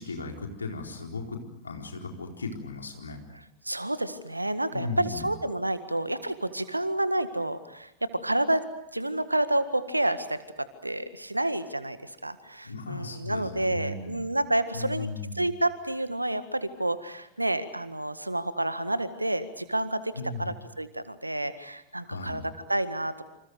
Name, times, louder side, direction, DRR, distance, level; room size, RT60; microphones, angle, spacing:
voice 1, 0.0-3.2 4.7-5.3 12.6-14.2 14.7-15.5 20.2-20.5 22.0-22.4, left 3 dB, 75° left, 2 dB, 4.2 m, -36 dB
voice 2, 3.6-8.7 8.9-15.1 15.3-23.2, right 1 dB, 85° right, 12 dB, 1.7 m, -29 dB
28.0 x 27.0 x 6.5 m, 0.81 s
figure-of-eight pair, 90°, 0 cm